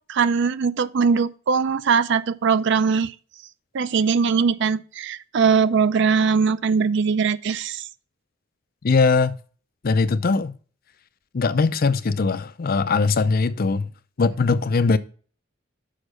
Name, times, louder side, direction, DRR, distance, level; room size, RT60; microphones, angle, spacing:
voice 1, 0.1-3.1 3.7-7.8, right 5 dB, 65° right, 0.4 m, -21 dB
voice 2, 8.8-9.4 9.8-10.5 11.3-13.9 14.2-15.0, left 4 dB, 50° left, 0.5 m, -20 dB
6.5 x 5.3 x 4.9 m
head